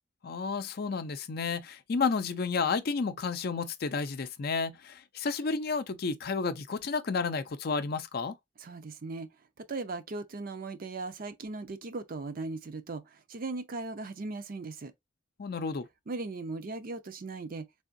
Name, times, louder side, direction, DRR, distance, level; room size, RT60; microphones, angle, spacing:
voice 1, 0.2-8.3 15.4-15.9, left 4 dB, 50° left, 0.5 m, -31 dB
voice 2, 8.6-9.3 9.6-14.9 16.1-17.7, right 3 dB, 45° right, 0.5 m, -38 dB
3.7 x 3.4 x 2.5 m
head